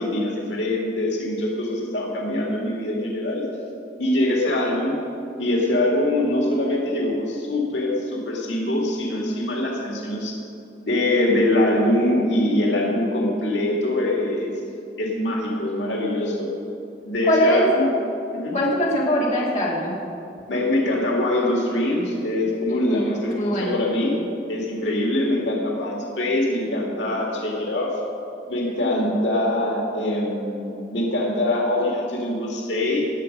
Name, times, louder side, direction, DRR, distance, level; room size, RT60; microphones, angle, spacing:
voice 1, 0.0-3.5 4.0-5.0 5.4-10.4 10.9-14.5 15.0-16.5 17.1-17.9 18.3-18.6 20.5-24.2 24.5-27.9 28.5-33.1, left 1 dB, 90° left, -2 dB, 2.1 m, -23 dB
voice 2, 17.3-17.7 18.5-20.0 22.7-23.8 28.8-29.1, equal, 40° left, -5 dB, 2.6 m, -22 dB
18.5 x 7.5 x 5.3 m, 2.8 s
head